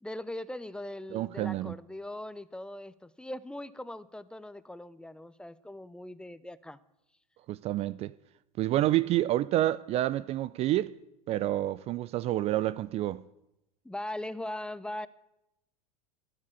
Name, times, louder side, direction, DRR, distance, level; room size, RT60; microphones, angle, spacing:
voice 1, 0.0-6.8 13.8-15.1, left 1 dB, 5° left, 0.6 m, -40 dB
voice 2, 1.1-1.8 7.5-8.1 8.6-10.9 11.3-13.2, right 14 dB, 35° right, 0.4 m, -28 dB
14.0 x 9.7 x 8.4 m
figure-of-eight pair, 85°, 19 cm